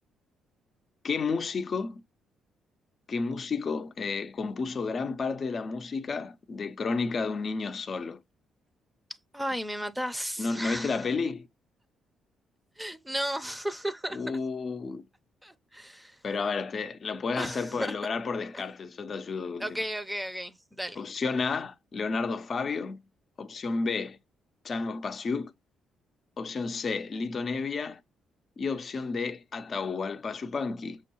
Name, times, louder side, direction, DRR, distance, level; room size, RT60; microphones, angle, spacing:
voice 1, 1.0-2.0 3.1-8.2 10.4-11.5 14.1-15.0 16.2-19.8 21.0-23.0 23.4-24.2 24.6-25.5 26.4-28.0 28.6-31.0, left 4 dB, 45° left, 0.6 m, -31 dB
voice 2, 9.3-11.0 12.8-14.2 15.4-16.2 17.4-17.9 18.5-18.6 19.6-21.0, equal, 5° right, 0.6 m, -34 dB
6.2 x 2.2 x 3.0 m
cardioid pair, 90°, 0 cm